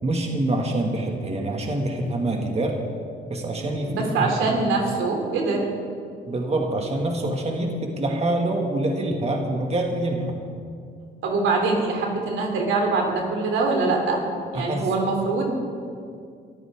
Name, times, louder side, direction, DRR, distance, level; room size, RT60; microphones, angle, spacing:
voice 1, 0.0-2.8 3.3-4.5 6.3-10.4 14.5-14.9, right 1 dB, 30° right, 1 dB, 2.1 m, -25 dB
voice 2, 3.8-5.6 11.2-14.2 14.5-15.5, right 3 dB, 85° right, 1 dB, 3.2 m, -23 dB
24.0 x 14.5 x 3.7 m, 2.3 s
cardioid pair, 90°, 20 cm